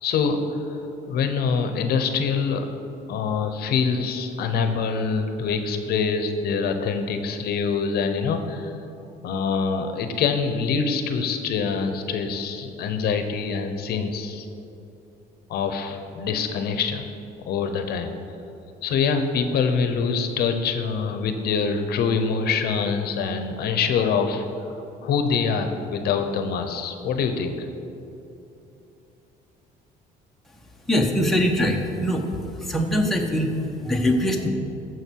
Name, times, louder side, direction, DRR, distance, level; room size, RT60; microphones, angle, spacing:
voice 1, 0.0-0.8 1.1-2.7 3.1-8.7 9.2-14.5 15.5-17.1 17.5-18.1 18.8-24.7 25.0-27.5, left 5 dB, 70° left, 7 dB, 0.9 m, -25 dB
voice 2, 30.9-32.3 32.6-34.5, equal, ahead, 0 dB, 1.2 m, -22 dB
15.5 x 6.3 x 4.7 m, 2.8 s
cardioid pair, 110°, 17 cm